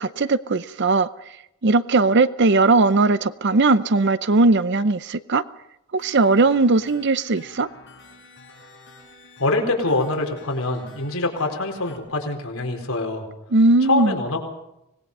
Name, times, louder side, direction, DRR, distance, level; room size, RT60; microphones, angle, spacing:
voice 1, 0.0-1.4 1.6-5.4 5.9-7.7 13.5-14.1, right 3 dB, 50° right, 14 dB, 0.6 m, -18 dB
sound 1, 6.0-12.0, left 2 dB, 55° left, 6.4 m, -48 dB
voice 2, 9.4-13.3 13.8-14.4, left 2 dB, 75° left, 3 dB, 4.3 m, -24 dB
25.5 x 20.0 x 5.5 m, 0.85 s
head